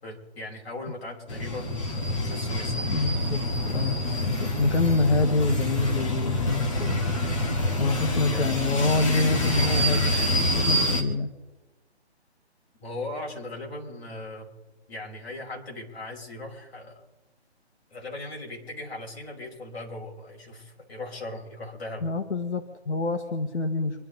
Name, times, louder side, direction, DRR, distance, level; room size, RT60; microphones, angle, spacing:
voice 1, 0.0-2.9 4.6-4.8 7.8-8.7 12.8-14.5 14.9-17.0 17.9-22.1, left 2 dB, 60° left, -1 dB, 5.9 m, -38 dB
sound 1, 1.3-11.0, left 1 dB, 30° left, 2.2 m, -26 dB
voice 2, 2.9-3.4 3.7-7.2 7.8-11.3 22.0-24.0, left 3 dB, 80° left, 5 dB, 1.8 m, -26 dB
27.0 x 12.5 x 4.0 m, 1.1 s
hypercardioid pair, 170°, 34 cm